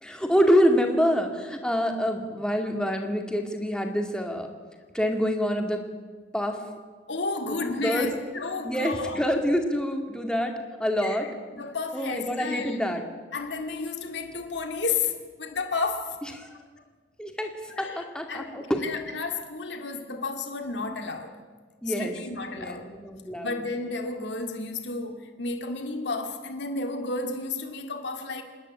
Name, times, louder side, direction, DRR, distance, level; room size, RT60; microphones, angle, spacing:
voice 1, 0.0-4.5 4.9-5.8 6.3-6.6 7.4-8.1 8.6-11.3 11.9-13.0 16.4-16.5 17.2-18.8 21.8-22.2 22.6-23.6, equal, 5° left, 3 dB, 2.1 m, -26 dB
voice 2, 7.1-9.2 11.0-11.3 11.5-12.8 13.3-16.2 17.7-21.4 21.9-22.9 23.4-28.4, left 3 dB, 65° left, 5 dB, 2.2 m, -32 dB
27.0 x 10.5 x 9.9 m, 1.5 s
head